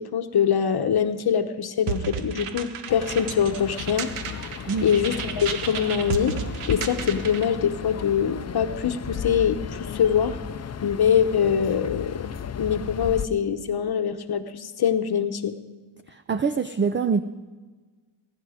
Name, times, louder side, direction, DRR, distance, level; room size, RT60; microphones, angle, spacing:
voice 1, 0.0-4.1 4.8-6.4 6.7-10.4 10.8-12.3 12.5-15.5, left 8 dB, 50° left, 8 dB, 1.0 m, -24 dB
sound 1, 1.9-7.5, right 7 dB, 80° right, 1.1 m, -33 dB
sound 2, 2.9-13.3, left 7 dB, 30° left, 0.6 m, -35 dB
voice 2, 16.1-17.2, right 5 dB, 25° right, 11 dB, 0.5 m, -24 dB
20.5 x 11.0 x 5.0 m, 1.4 s
cardioid pair, 100°, 50 cm